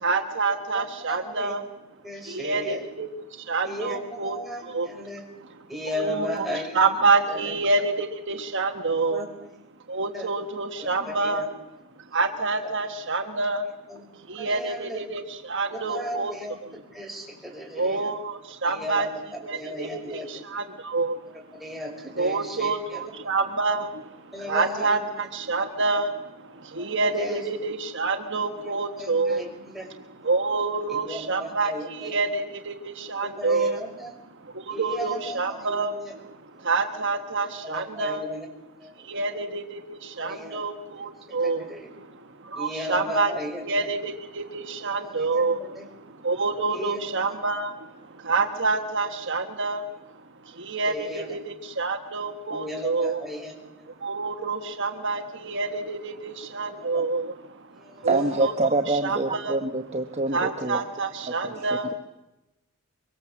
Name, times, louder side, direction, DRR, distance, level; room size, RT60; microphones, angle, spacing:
voice 1, 0.0-1.7 2.2-5.1 5.4-5.6 5.9-6.5 6.7-9.3 9.9-11.5 12.1-13.7 14.1-16.3 16.6-16.8 17.7-21.4 22.1-34.0 34.2-38.3 39.0-43.3 43.6-53.2 53.9-58.5 58.9-59.5 60.3-61.9, right 3 dB, 55° right, 6 dB, 1.4 m, -28 dB
voice 2, 1.1-1.5 2.0-2.8 3.6-5.2 5.7-6.8 7.3-7.5 9.1-9.3 10.1-10.3 10.8-11.5 13.9-14.0 14.4-15.0 15.7-16.6 16.9-18.1 18.6-19.1 19.5-20.3 21.6-23.0 24.3-25.0 26.8-27.4 28.7-29.9 30.9-32.1 33.2-34.1 34.7-36.1 37.6-38.5 38.8-39.2 40.2-40.6 41.4-41.9 42.6-43.9 45.2-45.9 46.7-47.0 50.8-51.4 52.5-53.5 56.9-57.0 57.8-58.3 60.6-60.7, left 1 dB, ahead, -1 dB, 5.4 m, -36 dB
voice 3, 58.0-60.8 61.4-61.7, right 2 dB, 30° right, 4 dB, 1.2 m, -25 dB
24.5 x 24.5 x 7.3 m, 0.95 s
head